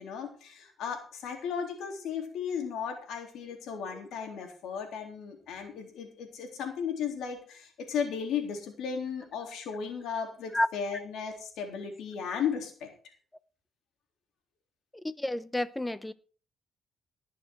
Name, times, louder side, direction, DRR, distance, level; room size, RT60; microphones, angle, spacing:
voice 1, 0.0-12.9, left 7 dB, 80° left, 3.7 m, -35 dB
voice 2, 15.0-16.1, left 1 dB, 10° left, 0.9 m, -30 dB
19.0 x 6.9 x 4.7 m
cardioid pair, 90°, 0 cm